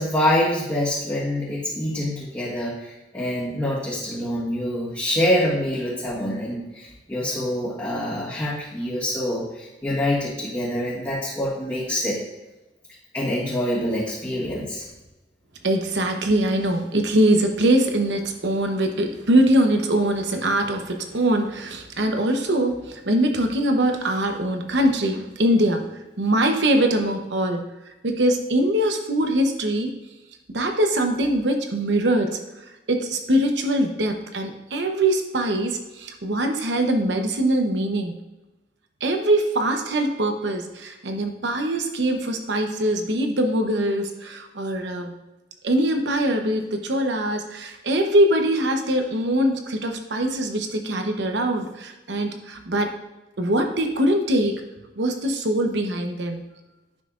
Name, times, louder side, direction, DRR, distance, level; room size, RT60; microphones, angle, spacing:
voice 1, 0.0-12.2 13.1-14.8, left 1 dB, 15° left, -9 dB, 1.7 m, -25 dB
voice 2, 15.6-25.8 26.2-27.6 28.0-30.0 30.5-32.4 32.9-38.1 39.0-45.1 45.6-52.9 53.4-54.5 55.0-56.4, right 1 dB, 75° right, 5 dB, 0.9 m, -22 dB
10.0 x 5.8 x 2.5 m, 1.1 s
head